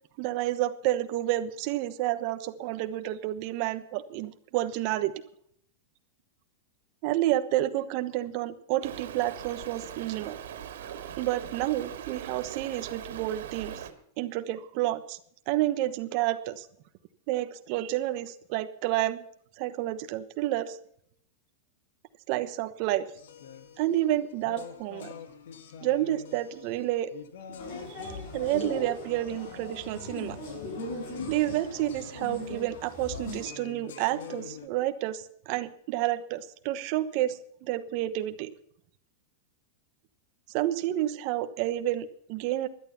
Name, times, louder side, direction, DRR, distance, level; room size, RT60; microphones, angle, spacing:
voice 1, 0.2-5.1 7.0-10.4 10.8-13.8 14.2-15.2 15.5-16.7 17.3-19.3 19.6-20.8 22.3-23.1 23.8-25.1 25.8-27.1 27.9-30.4 31.3-38.5 40.5-42.7, right 14 dB, 35° right, 11 dB, 1.1 m, -30 dB
Stream, 8.8-13.9, right 9 dB, 75° right, 2.4 m, -41 dB
sound 1, 23.2-34.7, left 7 dB, 75° left, 2.0 m, -46 dB
sound 2, 27.6-33.5, left 1 dB, 45° left, 7.4 m, -39 dB
16.5 x 11.5 x 5.7 m, 0.67 s
supercardioid pair, 180°, 0 cm